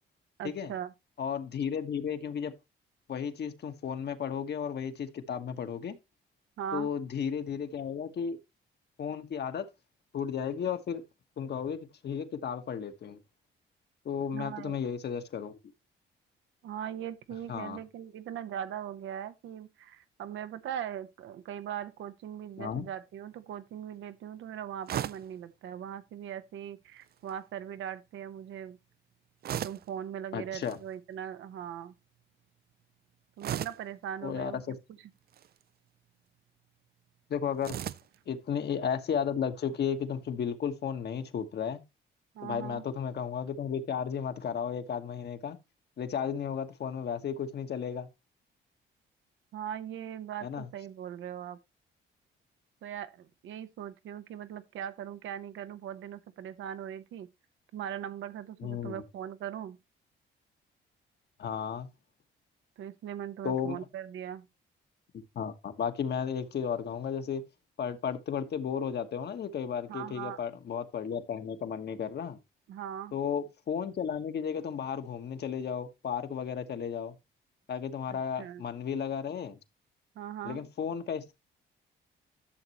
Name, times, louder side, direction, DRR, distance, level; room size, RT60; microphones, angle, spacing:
voice 1, 0.4-0.9 6.6-6.9 14.3-14.8 16.6-28.8 29.5-31.9 33.4-34.8 42.3-42.8 49.5-51.6 52.8-57.3 57.7-59.8 62.8-64.5 69.9-70.4 72.7-73.2 78.1-78.6 80.1-80.7, right 9 dB, 75° right, 1.0 m, -40 dB
voice 2, 1.2-2.5 3.1-6.0 6.7-8.4 9.0-9.6 10.1-11.0 11.4-13.2 14.0-15.6 17.5-17.8 22.6-22.8 30.3-30.8 34.2-34.7 37.3-37.7 38.3-41.8 42.4-45.6 46.0-48.1 50.4-50.7 58.6-59.0 61.4-61.9 63.4-63.8 65.3-67.4 67.8-72.4 73.1-77.1 77.7-79.6 80.4-81.3, left 7 dB, 55° left, 1.3 m, -34 dB
sound 1, 24.9-25.3 27.0-27.4 29.4-29.9 30.5-30.8 33.4-33.9 35.2-35.6 37.6-38.2, right 10 dB, 50° right, 0.5 m, -36 dB
11.5 x 6.7 x 3.0 m
cardioid pair, 90°, 20 cm